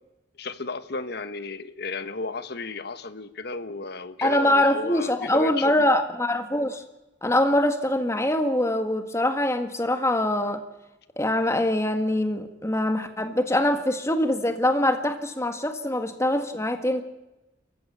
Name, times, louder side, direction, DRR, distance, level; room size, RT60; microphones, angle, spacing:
voice 1, 0.4-5.9, left 3 dB, 60° left, 11 dB, 1.3 m, -33 dB
voice 2, 4.2-6.8 7.2-10.6 11.2-17.0, left 1 dB, 15° left, 6 dB, 1.8 m, -23 dB
28.0 x 15.0 x 8.6 m, 0.99 s
head